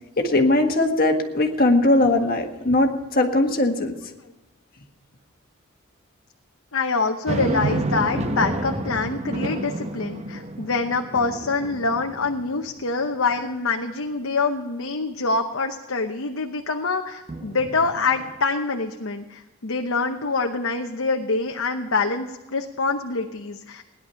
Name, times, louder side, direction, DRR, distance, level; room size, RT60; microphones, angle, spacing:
voice 1, 0.2-4.0, left 2 dB, 40° left, 4 dB, 1.6 m, -20 dB
voice 2, 6.7-23.8, left 4 dB, 60° left, 3 dB, 0.9 m, -25 dB
sound 1, 7.3-12.8 13.3-13.4 17.3-18.4, right 2 dB, 30° right, 0.9 m, -30 dB
17.0 x 10.5 x 5.7 m, 1.1 s
head